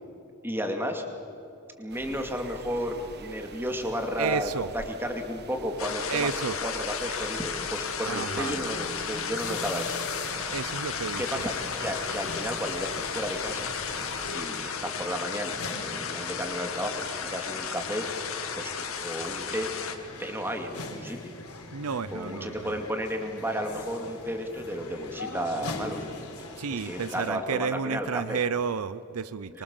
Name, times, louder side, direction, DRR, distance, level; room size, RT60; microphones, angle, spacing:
voice 1, 0.4-1.0 1.8-6.3 6.6-10.0 11.2-11.5 11.8-13.7 14.3-18.1 18.5-19.7 20.2-21.3 22.1-26.0 26.7-28.4 29.5-29.6, equal, 10° right, 4 dB, 2.4 m, -33 dB
sound 1, 1.9-14.4, right 3 dB, 45° right, 1.3 m, -46 dB
voice 2, 4.2-4.7 6.1-6.6 8.0-8.5 10.5-11.5 21.7-22.8 26.6-29.6, right 6 dB, 85° right, 15 dB, 0.6 m, -31 dB
sound 2, 5.8-19.9, left 6 dB, 70° left, 2.3 m, -34 dB
sound 3, 8.3-27.3, left 2 dB, 85° left, 4.0 m, -42 dB
25.0 x 24.0 x 7.3 m, 2.7 s
head